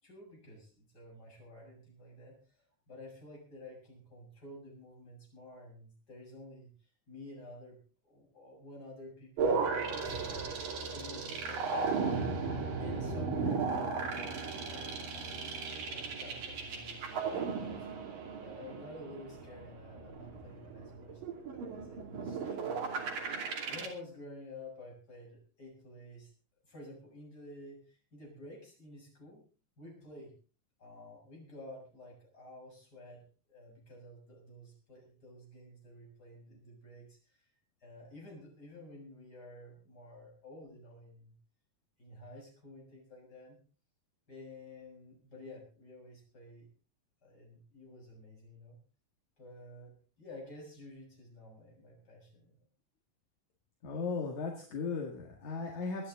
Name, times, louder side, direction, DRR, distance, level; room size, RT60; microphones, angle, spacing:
voice 1, 0.0-2.4 2.9-6.7 7.1-9.6 10.0-10.5 10.9-11.8 12.8-15.0 15.9-21.2 21.5-23.1 23.7-26.3 26.6-29.5 29.8-30.3 30.8-37.5 37.8-41.3 42.0-43.6 44.3-46.7 47.2-48.8 49.4-52.6, left 1 dB, 25° left, -1 dB, 7.7 m, -51 dB
sound 1, 9.4-23.9, right 4 dB, 85° right, 4.4 m, -36 dB
sound 2, 10.1-12.7 13.0-13.1, right 1 dB, 80° left, 8.9 m, -53 dB
voice 2, 13.4-13.8 53.8-56.1, left 4 dB, 60° left, 1 dB, 3.3 m, -37 dB
25.0 x 10.0 x 3.9 m, 0.38 s
omnidirectional pair, 3.8 m